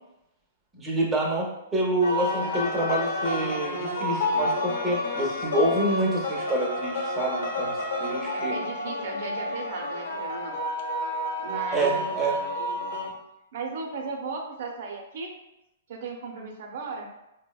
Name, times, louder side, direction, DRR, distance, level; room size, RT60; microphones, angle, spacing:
voice 1, 0.7-8.6 11.7-12.4, right 1 dB, 15° right, -3 dB, 0.8 m, -27 dB
sound 1, 2.0-13.1, left 1 dB, 75° left, 0.7 m, -30 dB
voice 2, 8.3-10.6 11.1-12.8 13.5-15.3 15.9-17.1, right 4 dB, 60° right, 2 dB, 0.6 m, -36 dB
4.5 x 2.1 x 2.3 m, 0.89 s
hypercardioid pair, 135°, 0 cm